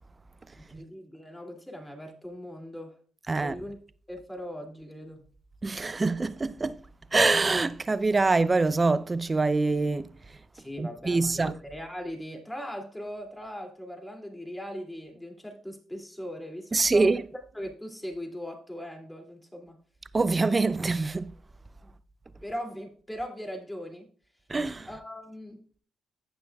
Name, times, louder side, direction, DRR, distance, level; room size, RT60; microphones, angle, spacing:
voice 1, 0.5-3.0 3.3-3.8 4.1-5.2 10.5-17.2 17.5-19.8 21.8-21.9 22.4-24.1 24.8-25.7, equal, 5° left, 2.6 m, -39 dB
voice 2, 5.6-6.8 7.1-10.1 10.8-11.5 16.7-17.2 20.1-21.3 24.5-24.9, right 3 dB, 25° right, 0.5 m, -25 dB
17.5 x 6.1 x 2.3 m
cardioid pair, 90°, 0 cm